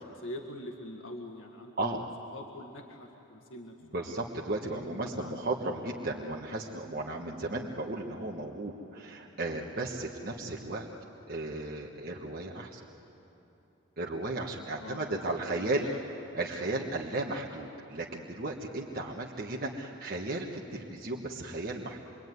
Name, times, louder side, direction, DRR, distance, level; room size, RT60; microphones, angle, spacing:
voice 1, 0.0-2.0 2.3-4.2 4.7-5.4 5.7-5.8 14.7-15.2 15.5-16.0, left 1 dB, 70° left, 1 dB, 1.9 m, -44 dB
voice 2, 3.9-10.9 11.3-12.8 14.0-15.9 16.3-22.0, right 2 dB, 45° right, -2 dB, 1.5 m, -35 dB
26.5 x 23.5 x 9.5 m, 2.9 s
head